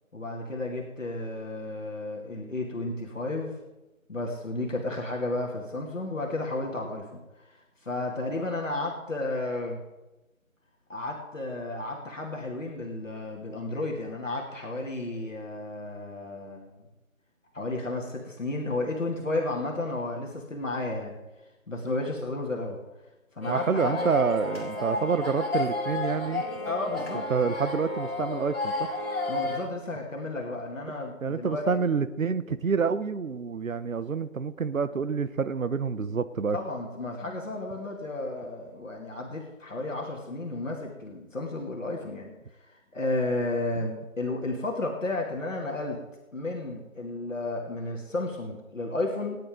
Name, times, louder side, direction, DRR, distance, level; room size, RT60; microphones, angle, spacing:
voice 1, 0.1-3.6 4.1-7.2 7.5-9.8 10.9-16.7 17.5-21.2 21.7-22.8 23.4-24.1 26.7-27.3 29.3-31.8 36.0-36.1 36.5-42.3 42.7-46.0 46.3-49.4, left 2 dB, 65° left, 0 dB, 2.4 m, -32 dB
sound 1, 23.4-29.6, left 2 dB, 45° left, 4.0 m, -31 dB
voice 2, 23.5-26.4 27.3-28.9 31.2-36.6, right 5 dB, 70° right, 14 dB, 0.9 m, -28 dB
19.5 x 9.9 x 3.7 m, 1.0 s
figure-of-eight pair, 175°, 41 cm